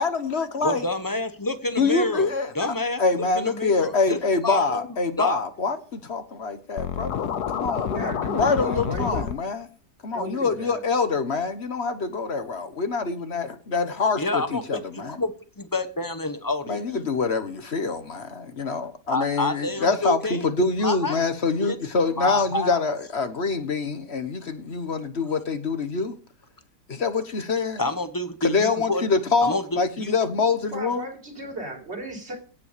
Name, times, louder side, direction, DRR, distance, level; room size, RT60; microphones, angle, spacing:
voice 1, 0.0-0.8 1.8-9.7 10.0-15.2 16.7-26.2 26.9-27.8 28.4-31.0, left 4 dB, 40° left, 1.5 m, -25 dB
voice 2, 0.6-2.3 2.5-3.0 3.3-4.2 4.4-4.8 5.2-5.4 14.2-16.8 19.1-20.5 20.8-21.2 21.6-21.8 22.2-22.8 27.8-29.1 29.4-30.1, left 2 dB, 15° left, 1.1 m, -28 dB
Scratching (performance technique), 6.8-9.3, left 9 dB, 75° left, 1.5 m, -28 dB
voice 3, 7.9-9.3 10.1-10.8 30.7-32.4, right 2 dB, 40° right, 4.3 m, -35 dB
17.5 x 5.9 x 6.8 m
omnidirectional pair, 1.8 m